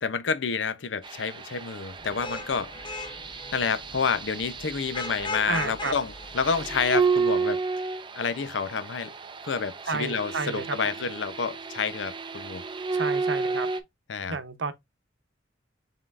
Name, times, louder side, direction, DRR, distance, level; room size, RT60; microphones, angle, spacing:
voice 1, 0.0-2.7 3.5-7.6 8.1-9.1 9.4-12.6 14.1-14.4, left 5 dB, 80° left, 0.6 m, -29 dB
sound 1, 1.0-13.8, right 4 dB, 25° right, 0.5 m, -32 dB
Vehicle horn car horn honking / Traffic noise roadway noise, 2.0-7.3, left 3 dB, 25° left, 0.6 m, -39 dB
voice 2, 5.5-5.9 9.9-11.0 12.9-13.7 14.3-14.7, right 4 dB, 80° right, 0.8 m, -31 dB
5.5 x 3.7 x 2.4 m
head